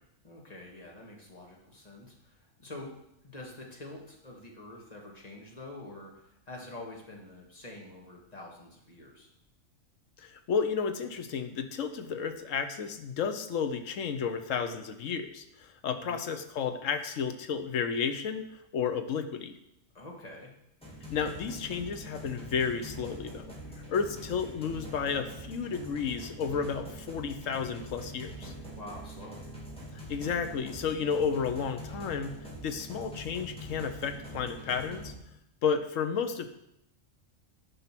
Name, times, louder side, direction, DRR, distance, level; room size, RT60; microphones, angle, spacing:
voice 1, 0.2-2.9 3.2-9.3 16.0-16.2 19.9-20.5 28.8-29.4, left 2 dB, 30° left, -1 dB, 1.9 m, -46 dB
voice 2, 10.2-18.4 18.7-19.5 21.1-23.5 23.9-28.5 29.9-32.4 32.6-35.1 35.6-36.5, left 6 dB, 80° left, 9 dB, 1.2 m, -32 dB
sound 1, 20.8-35.1, right 1 dB, 5° left, 2.4 m, -44 dB
9.6 x 5.5 x 5.9 m, 0.81 s
omnidirectional pair, 1.4 m